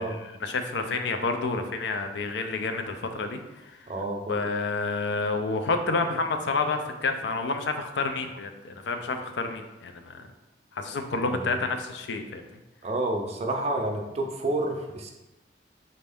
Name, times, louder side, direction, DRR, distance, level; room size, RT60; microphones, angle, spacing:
voice 1, 0.0-3.8 4.3-10.2 10.7-12.4, left 3 dB, 70° left, 6 dB, 0.4 m, -29 dB
voice 2, 3.9-4.4 11.3-11.6 12.8-15.1, right 2 dB, 35° right, 3 dB, 0.5 m, -29 dB
4.2 x 2.6 x 3.4 m, 1.0 s
head